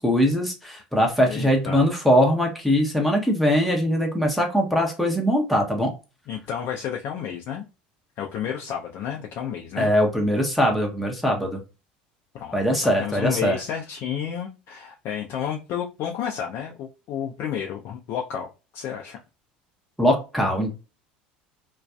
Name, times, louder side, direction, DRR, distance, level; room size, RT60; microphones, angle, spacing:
voice 1, 0.0-5.9 9.8-11.6 12.5-13.6 20.0-20.8, equal, ahead, 0 dB, 0.7 m, -21 dB
voice 2, 1.3-1.8 6.3-7.6 8.2-9.9 12.3-12.6 12.8-19.2, left 8 dB, 55° left, 1 dB, 0.4 m, -31 dB
2.5 x 2.2 x 2.2 m, 0.30 s
hypercardioid pair, 80°, 5 cm